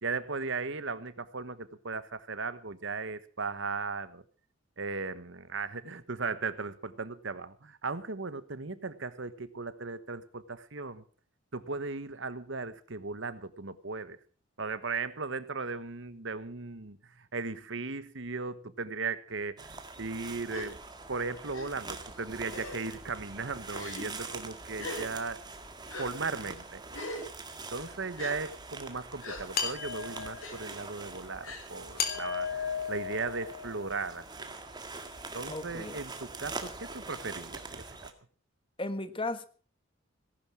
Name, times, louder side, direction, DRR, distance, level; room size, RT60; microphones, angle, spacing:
voice 1, 0.0-4.2 4.8-11.0 11.5-14.2 14.6-17.0 17.3-20.8 21.1-25.4 26.0-26.8 27.7-34.2 35.3-38.1, right 4 dB, 60° right, 14 dB, 1.2 m, -37 dB
sound 1, 19.6-38.1, right 3 dB, 20° right, 1.9 m, -44 dB
Gasp, 20.5-20.7 21.5-21.7 22.5-22.9 23.7-24.1 24.8-25.0 25.9-26.1 26.9-27.3 28.2-28.3 29.2-29.4 30.4-30.5 31.4-31.6, left 2 dB, 85° left, 6.5 m, -40 dB
sound 2, 29.5-30.6 32.0-33.9, left 7 dB, 45° left, 3.5 m, -34 dB
voice 2, 35.5-36.0 38.8-39.5, left 2 dB, 25° left, 11 dB, 1.4 m, -35 dB
18.5 x 11.5 x 6.2 m, 0.41 s
head